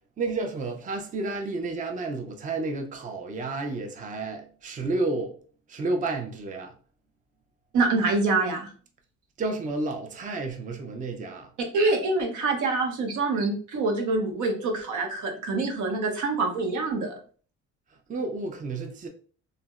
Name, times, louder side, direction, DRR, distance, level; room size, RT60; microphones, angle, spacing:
voice 1, 0.2-5.3 5.7-6.7 9.4-11.5 18.1-19.1, right 3 dB, 25° right, 0.5 m, -31 dB
voice 2, 7.7-8.7 11.7-17.1, right 3 dB, 75° right, 0.8 m, -25 dB
3.8 x 2.1 x 2.3 m
cardioid pair, 90°, 30 cm